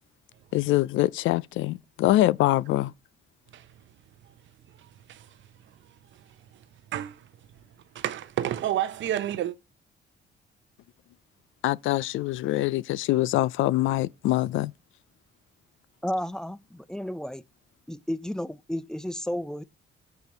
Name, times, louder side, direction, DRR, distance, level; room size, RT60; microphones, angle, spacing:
voice 1, 0.5-2.9 11.6-14.7, left 16 dB, 80° left, 0.4 m, -24 dB
voice 2, 4.7-7.6 7.9-9.6, right 11 dB, 70° right, 0.7 m, -33 dB
voice 3, 16.0-17.4 17.9-19.6, equal, 5° left, 0.5 m, -32 dB
6.8 x 4.6 x 6.5 m
cardioid pair, 90°, 20 cm